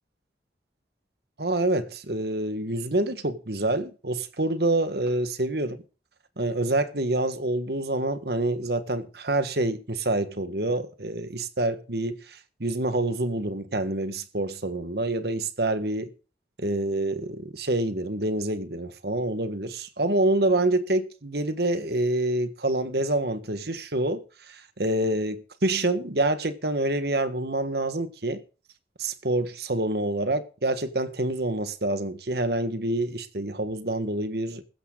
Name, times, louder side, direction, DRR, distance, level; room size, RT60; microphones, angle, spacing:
voice 1, 1.4-5.8 6.4-16.1 16.6-28.4 29.0-34.6, right 2 dB, 60° right, 1.6 m, -27 dB
15.0 x 12.5 x 3.9 m
head